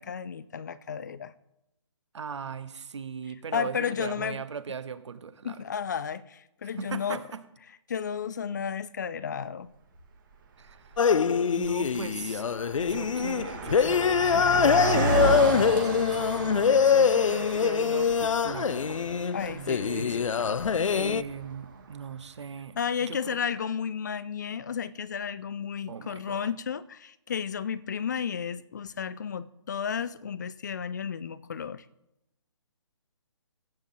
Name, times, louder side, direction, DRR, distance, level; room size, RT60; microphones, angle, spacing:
voice 1, 0.0-1.3 3.5-4.4 5.4-7.2 7.9-9.7 19.3-20.5 22.8-31.8, left 7 dB, 35° left, 18 dB, 0.4 m, -33 dB
voice 2, 2.1-5.6 6.8-7.4 10.6-11.1 11.6-12.4 12.8-19.0 19.5-20.5 20.9-23.4 25.9-26.4, right 6 dB, 65° right, 12 dB, 1.1 m, -39 dB
Car passing by, 10.0-10.1 10.8-11.1 11.4-21.8, right 3 dB, 40° right, 2.4 m, -33 dB
sound 1, 11.0-21.2, left 6 dB, 90° left, 0.6 m, -24 dB
15.0 x 8.9 x 3.9 m, 0.90 s
hypercardioid pair, 165°, 16 cm